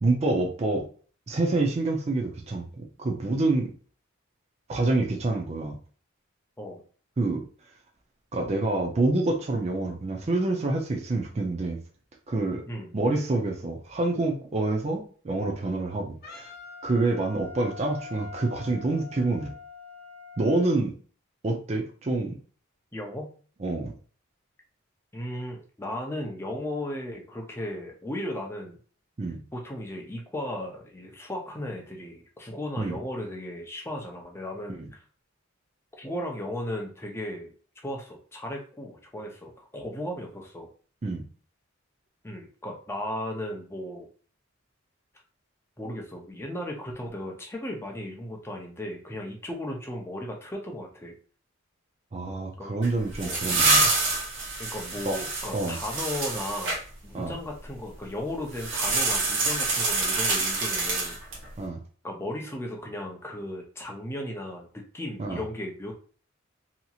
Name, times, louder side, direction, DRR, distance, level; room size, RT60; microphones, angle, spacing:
voice 1, 0.0-0.9 1.3-3.7 4.7-5.8 7.2-7.4 8.3-11.8 12.3-12.6 12.9-16.5 16.8-19.5 20.4-20.9 21.4-22.4 23.6-23.9 29.2-29.4 32.8-33.0 34.7-34.9 41.0-41.2 52.1-53.9 55.1-55.2 55.5-55.8 57.1-57.4 61.6-61.8 65.2-65.4, right 2 dB, 30° right, 1 dB, 0.4 m, -27 dB
Wind instrument woodwind instrument, 16.2-20.7, left 5 dB, 50° left, 0.9 m, -44 dB
voice 2, 22.9-23.3 25.1-28.8 29.5-35.0 36.0-37.5 37.8-40.7 42.2-44.1 45.8-51.1 52.6-52.7 53.2-53.4 54.6-56.8 57.0-61.2 62.0-65.9, left 1 dB, 10° left, 1 dB, 0.6 m, -36 dB
sound 1, 52.8-56.8 58.5-61.5, right 3 dB, 60° right, 0.9 m, -26 dB
2.8 x 2.8 x 2.4 m, 0.41 s
head